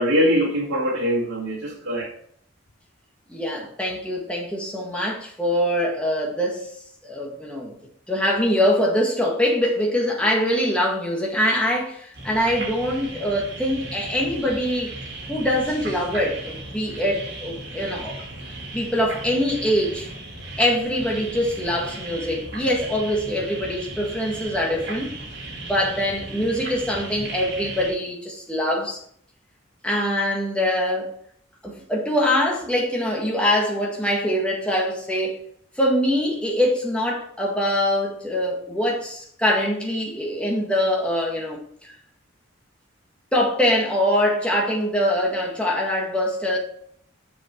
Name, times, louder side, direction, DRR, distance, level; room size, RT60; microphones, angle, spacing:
voice 1, 0.0-2.1, equal, 90° right, -3 dB, 1.8 m, -22 dB
voice 2, 3.3-6.7 7.0-7.7 8.1-14.9 15.3-18.1 18.7-20.1 20.6-25.1 25.6-29.0 29.8-31.1 31.6-35.4 35.8-41.9 43.3-46.6, equal, 5° left, -2 dB, 1.8 m, -23 dB
sound 1, 12.1-27.9, right 2 dB, 55° right, 2.7 m, -36 dB
7.4 x 6.4 x 4.5 m, 0.64 s
head